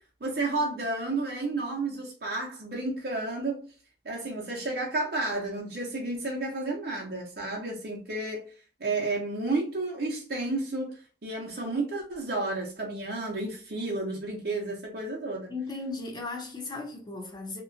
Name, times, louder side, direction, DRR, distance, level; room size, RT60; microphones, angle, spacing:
voice 1, 0.2-3.6 4.0-8.4 8.8-10.9 11.2-15.5, right 2 dB, 60° right, 0.7 m, -31 dB
voice 2, 15.5-17.6, left 3 dB, 25° left, 0.7 m, -36 dB
2.9 x 2.3 x 2.5 m
head